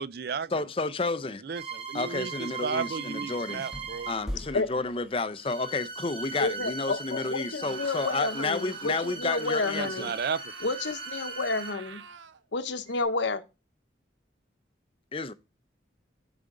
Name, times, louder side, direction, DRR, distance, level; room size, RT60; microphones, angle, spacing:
voice 1, 0.0-0.5 1.4-4.1 9.8-10.5, right 5 dB, 55° right, 0.4 m, -33 dB
voice 2, 0.5-1.4 1.9-3.6 4.1-10.1 15.1-15.3, left 3 dB, 30° left, 0.5 m, -31 dB
sound 1, 1.5-4.4 5.4-12.0 12.9-13.0, right 4 dB, 30° right, 1.4 m, -39 dB
sound 2, 3.6-5.8, equal, 5° right, 1.1 m, -41 dB
voice 3, 6.4-10.1 10.6-12.0 12.5-13.4, left 3 dB, 75° left, 0.9 m, -30 dB
Screaming, 7.6-12.4, right 6 dB, 85° right, 0.7 m, -46 dB
10.5 x 5.0 x 3.7 m
head